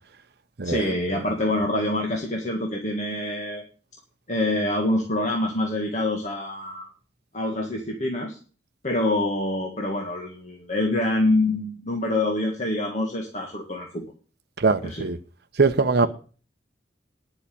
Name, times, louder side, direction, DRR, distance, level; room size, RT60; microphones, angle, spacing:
voice 1, 0.6-3.6 4.3-6.9 7.3-8.4 8.8-14.0 14.8-15.1, left 1 dB, 40° left, 1.8 m, -26 dB
voice 2, 14.6-15.2 15.6-16.1, right 4 dB, 55° right, 0.7 m, -21 dB
11.0 x 5.7 x 8.6 m
head